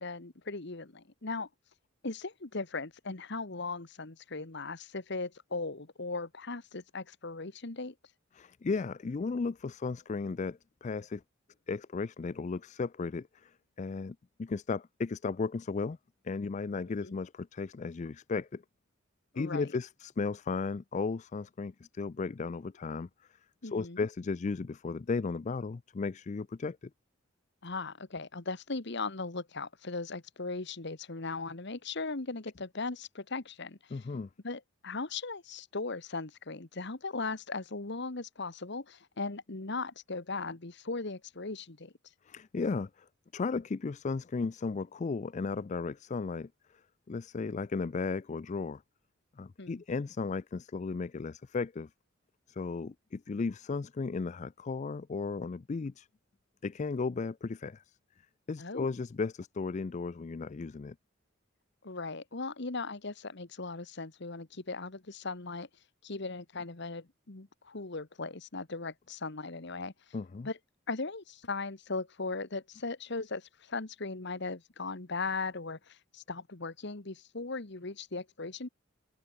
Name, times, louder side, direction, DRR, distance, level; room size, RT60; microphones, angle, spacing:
voice 1, 0.0-1.5 2.0-7.9 17.0-17.2 19.3-19.7 23.6-24.1 27.6-34.0 34.4-41.9 49.6-49.8 58.6-58.9 61.8-65.7 66.0-69.9 70.4-70.6 70.9-78.7, left 3 dB, 55° left, 1.5 m, -38 dB
voice 2, 8.4-11.2 11.7-16.0 16.2-18.6 19.4-23.1 23.7-26.9 33.9-34.3 42.3-43.1 43.3-46.5 47.1-48.8 49.4-51.9 52.5-56.1 56.6-58.0 58.5-61.0 70.1-70.5, left 4 dB, 35° left, 0.4 m, -35 dB
open air
head